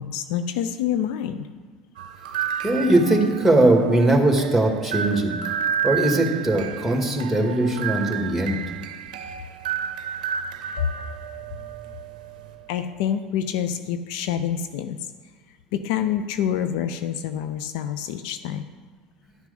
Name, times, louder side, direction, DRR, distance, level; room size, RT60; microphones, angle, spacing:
voice 1, 0.0-1.5 12.7-15.1 15.7-18.7, left 9 dB, 70° left, 10 dB, 0.5 m, -27 dB
sound 1, 2.0-12.7, right 8 dB, 75° right, 0.6 m, -31 dB
voice 2, 2.6-5.3 5.8-8.6, right 2 dB, 5° right, 2 dB, 2.0 m, -20 dB
11.0 x 6.0 x 5.2 m, 1.4 s
hypercardioid pair, 70°, 4 cm